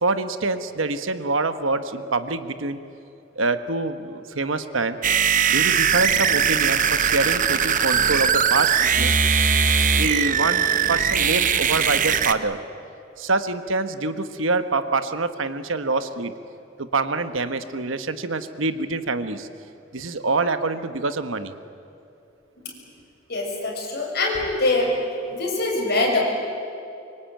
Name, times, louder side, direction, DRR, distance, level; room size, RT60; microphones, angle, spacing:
voice 1, 0.0-2.8 3.3-5.0 5.5-9.2 10.0-12.6 13.2-16.3 16.8-19.5 19.9-21.5, right 3 dB, 85° right, 10 dB, 1.3 m, -25 dB
sound 1, 5.0-12.3, right 7 dB, 45° right, 0.9 m, -20 dB
voice 2, 23.3-24.9 25.3-26.2, left 2 dB, 55° left, -1 dB, 6.7 m, -23 dB
24.5 x 23.5 x 9.1 m, 2.7 s
head